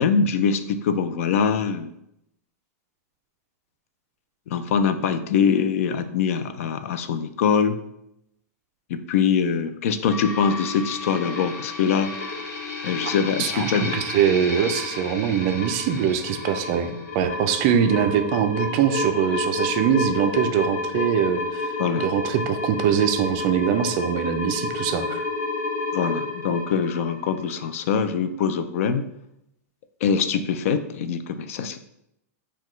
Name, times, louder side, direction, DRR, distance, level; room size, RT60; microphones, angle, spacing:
voice 1, 0.0-1.9 4.5-7.8 8.9-12.1 12.8-14.0 21.8-22.0 25.9-29.1 30.0-31.8, left 6 dB, 55° left, 10 dB, 0.3 m, -23 dB
sound 1, 10.1-28.0, left 2 dB, 90° left, 1.1 m, -30 dB
voice 2, 13.4-21.7 22.0-25.2, right 8 dB, 35° right, 7 dB, 0.3 m, -23 dB
5.8 x 2.2 x 3.1 m, 0.81 s
supercardioid pair, 160°, 9 cm